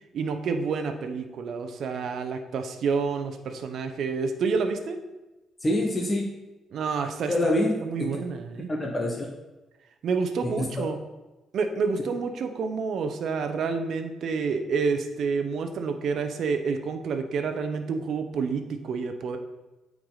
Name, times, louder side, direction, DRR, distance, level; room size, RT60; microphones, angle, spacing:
voice 1, 0.1-5.0 6.7-8.7 10.0-11.0 11.5-19.4, right 5 dB, 65° right, 7 dB, 0.9 m, -29 dB
voice 2, 5.6-6.2 7.3-8.2 8.7-9.3 10.4-10.9, left 1 dB, 25° left, -1 dB, 1.3 m, -26 dB
8.6 x 4.8 x 4.0 m, 1.1 s
cardioid pair, 90°, 0 cm